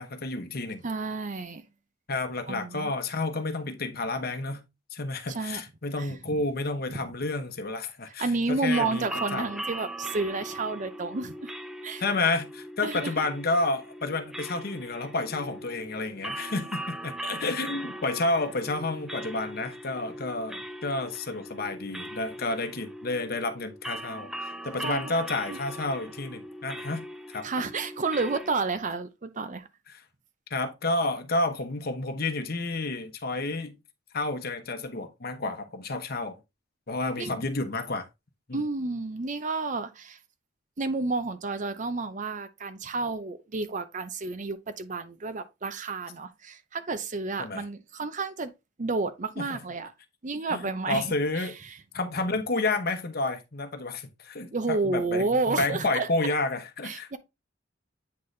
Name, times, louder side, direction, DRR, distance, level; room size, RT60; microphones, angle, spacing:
voice 1, 0.0-0.8 2.1-4.6 4.9-9.4 12.0-27.5 29.9-30.0 30.5-33.8 34.1-36.4 36.9-38.1 38.5-38.6 47.4-47.6 49.4-49.6 50.5-51.5 51.9-57.2, left 2 dB, 55° left, 1.0 m, -30 dB
voice 2, 0.8-1.6 2.5-2.9 5.3-5.6 6.0-6.4 8.2-11.5 11.8-12.0 12.8-13.3 24.8-25.6 27.4-29.7 37.2-37.4 38.5-40.2 40.8-48.5 48.8-49.9 50.2-51.7 54.4-56.1 56.8-57.2, right 3 dB, 40° right, 0.6 m, -31 dB
sound 1, 8.7-28.5, right 1 dB, ahead, 0.4 m, -40 dB
8.6 x 4.0 x 3.2 m
head